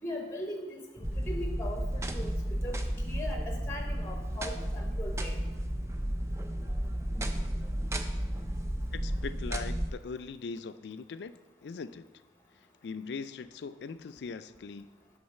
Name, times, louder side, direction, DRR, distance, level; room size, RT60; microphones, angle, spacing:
voice 1, 0.0-2.4 2.6-5.4, left 1 dB, 15° left, 2 dB, 0.8 m, -40 dB
sound 1, 1.0-9.9, equal, 15° right, 0.4 m, -33 dB
voice 2, 8.9-11.3 11.6-12.1 12.8-14.9, left 5 dB, 70° left, 13 dB, 0.4 m, -40 dB
8.7 x 3.9 x 6.4 m, 1.1 s
head